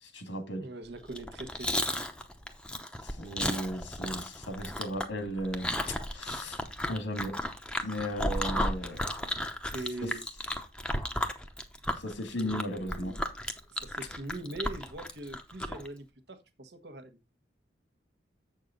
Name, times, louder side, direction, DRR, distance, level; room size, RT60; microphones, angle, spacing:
voice 1, 0.0-0.7 3.0-6.6 6.9-7.4 7.8-9.1 10.0-10.1 12.0-13.2, equal, 90° left, 1.9 m, -36 dB
voice 2, 0.6-1.8 9.6-10.2 12.4-13.2 13.7-17.2, right 2 dB, 65° right, 1.1 m, -42 dB
Chewing mastication, 1.1-15.9, left 1 dB, 5° left, 0.7 m, -34 dB
7.8 x 6.6 x 3.9 m
head